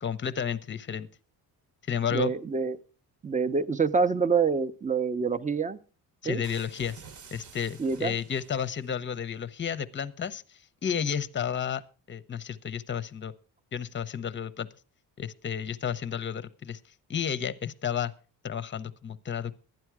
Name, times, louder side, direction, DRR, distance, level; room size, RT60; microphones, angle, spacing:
voice 1, 0.0-1.1 1.9-2.3 6.2-7.0 7.3-11.8 12.1-13.3 13.7-14.7 15.2-16.8 17.1-18.1 18.4-19.5, left 8 dB, 30° left, 16 dB, 0.7 m, -32 dB
voice 2, 2.1-2.8 3.2-5.8 6.2-6.4 7.8-8.1, right 5 dB, 20° right, 12 dB, 0.7 m, -26 dB
sound 1, 6.4-8.9, right 5 dB, 50° right, 1.1 m, -50 dB
12.0 x 10.5 x 4.7 m, 0.36 s
cardioid pair, 130°, 39 cm